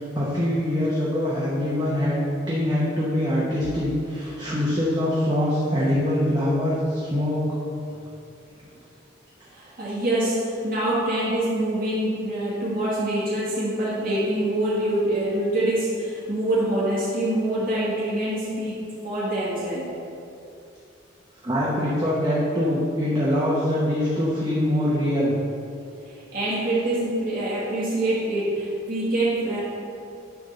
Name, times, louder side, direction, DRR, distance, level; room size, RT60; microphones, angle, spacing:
voice 1, 0.0-2.2 2.5-7.4 21.4-25.4, left 1 dB, 20° right, -7 dB, 1.0 m, -23 dB
voice 2, 9.5-19.9 26.0-29.6, right 1 dB, 45° right, -8 dB, 1.9 m, -25 dB
10.5 x 3.6 x 6.5 m, 2.7 s
head